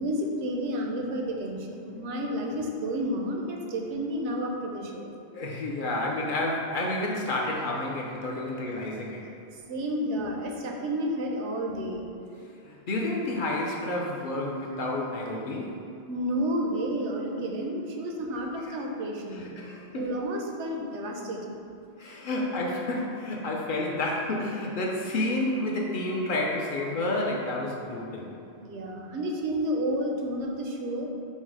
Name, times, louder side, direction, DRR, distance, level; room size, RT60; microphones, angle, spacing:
voice 1, 0.0-5.1 9.7-12.1 16.1-19.5 19.9-21.6 28.6-31.1, equal, 90° right, 1 dB, 0.9 m, -31 dB
voice 2, 5.3-9.2 12.6-15.8 18.6-18.8 19.3-20.1 22.0-28.3, left 2 dB, 60° left, -2 dB, 0.6 m, -30 dB
5.4 x 2.0 x 4.7 m, 2.5 s
omnidirectional pair, 1.1 m